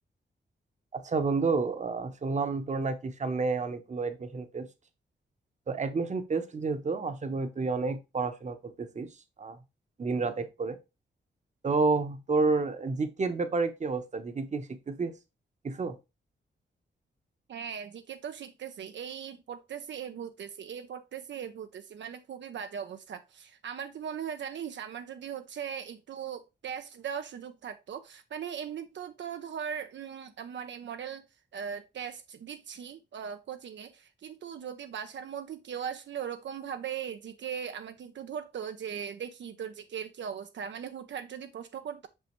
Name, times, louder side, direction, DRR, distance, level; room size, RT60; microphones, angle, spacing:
voice 1, 0.9-4.7 5.7-9.1 9.4-9.6 10.0-10.8 11.6-15.1 15.6-16.0, right 4 dB, 40° right, 0.9 m, -30 dB
voice 2, 17.5-31.2 31.5-42.1, right 8 dB, 80° right, 0.6 m, -39 dB
6.2 x 5.5 x 3.1 m
wide cardioid pair, 115°, 19 cm